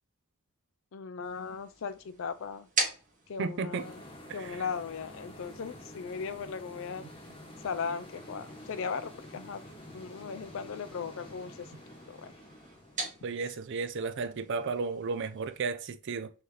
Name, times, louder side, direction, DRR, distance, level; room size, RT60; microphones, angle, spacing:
voice 1, 0.9-2.7 3.3-4.0 4.3-7.0 7.6-9.6 9.9-11.7 12.1-12.3, left 5 dB, 60° left, 0.4 m, -37 dB
sound 1, 1.2-15.6, right 3 dB, 35° right, 1.4 m, -43 dB
voice 2, 3.4-3.9 4.3-4.6 13.2-16.3, right 4 dB, 55° right, 0.4 m, -34 dB
sound 2, 3.7-14.3, left 1 dB, 25° left, 1.0 m, -49 dB
5.7 x 2.8 x 3.2 m
head